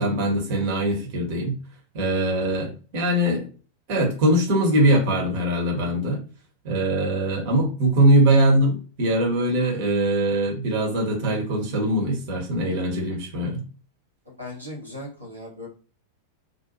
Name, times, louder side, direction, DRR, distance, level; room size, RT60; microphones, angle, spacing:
voice 1, 0.0-1.6 1.9-3.4 3.9-6.2 6.6-13.6, right 1 dB, 50° right, 0 dB, 1.0 m, -22 dB
voice 2, 14.2-15.7, left 1 dB, 85° right, -4 dB, 1.0 m, -38 dB
2.6 x 2.2 x 2.8 m, 0.36 s
figure-of-eight pair, 90°, 0 cm